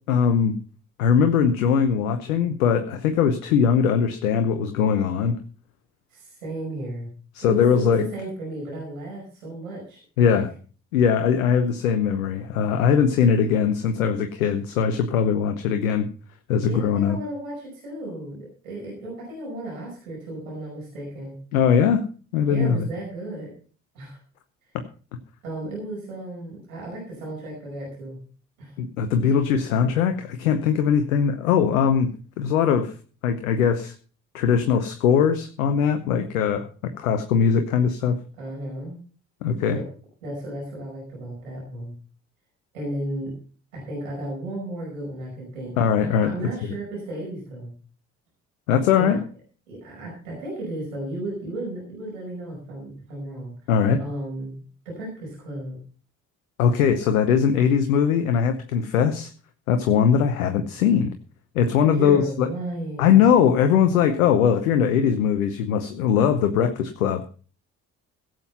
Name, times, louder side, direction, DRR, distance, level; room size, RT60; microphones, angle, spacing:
voice 1, 0.1-0.5 1.0-5.4 7.3-8.1 10.2-10.5 10.9-16.1 16.5-17.2 21.5-22.0 22.3-22.9 24.7-24.8 28.8-32.9 33.2-33.9 34.3-38.2 39.4-39.8 45.8-46.3 48.7-49.2 53.7-54.0 56.6-59.3 59.7-61.1 61.5-62.5 63.0-67.2, left 7 dB, 85° left, 8 dB, 0.9 m, -20 dB
voice 2, 6.1-7.1 7.4-10.3 16.6-21.3 22.5-23.5 23.9-24.2 25.4-28.2 28.6-28.7 38.4-39.0 39.6-39.9 40.2-41.9 42.7-43.3 43.7-47.7 49.0-49.2 49.7-53.7 54.0-55.8 61.9-63.2, right 1 dB, 90° right, -3 dB, 5.4 m, -34 dB
16.5 x 7.8 x 5.5 m, 0.40 s
hypercardioid pair, 40°, 41 cm